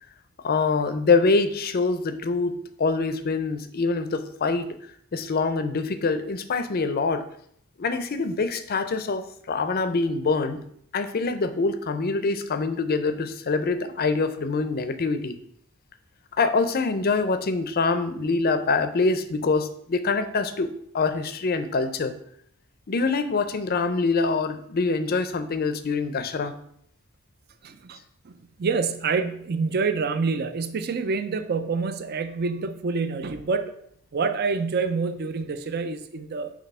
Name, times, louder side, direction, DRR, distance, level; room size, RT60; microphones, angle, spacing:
voice 1, 0.4-4.8 5.1-7.2 7.8-10.6 10.9-15.4 16.4-22.1 22.9-26.6, left 4 dB, 45° left, 10 dB, 0.5 m, -25 dB
voice 2, 27.6-28.0 28.2-33.7 34.1-36.5, right 4 dB, 50° right, 10 dB, 0.5 m, -27 dB
6.1 x 3.0 x 5.4 m, 0.68 s
head